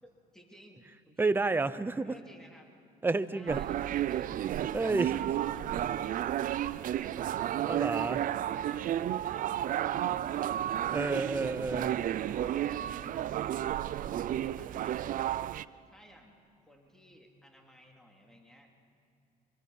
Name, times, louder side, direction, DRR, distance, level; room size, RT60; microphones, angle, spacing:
voice 1, 0.0-1.3 2.0-2.7 3.3-4.3 5.1-10.9 11.9-15.1 15.9-18.7, equal, 5° left, 1 dB, 2.7 m, -57 dB
voice 2, 1.2-2.1 3.0-3.6 4.7-5.2 7.7-8.2 10.9-11.9, right 3 dB, 10° right, 12 dB, 0.7 m, -30 dB
sound 1, 3.5-15.6, right 11 dB, 55° right, 0.5 m, -32 dB
24.5 x 22.5 x 5.5 m, 2.6 s
cardioid pair, 110°, 17 cm